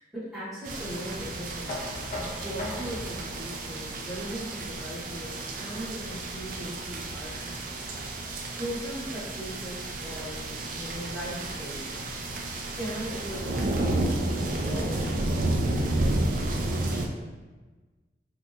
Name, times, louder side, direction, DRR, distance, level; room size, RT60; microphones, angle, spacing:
voice 1, 0.0-1.8 2.1-7.8 8.1-12.0 12.7-15.9, equal, ahead, -11 dB, 1.2 m, -39 dB
sound 1, 0.6-17.1, right 2 dB, 45° right, 0.3 m, -31 dB
Knock, 1.7-7.5, left 2 dB, 40° left, 0.4 m, -42 dB
3.3 x 2.7 x 2.6 m, 1.3 s
head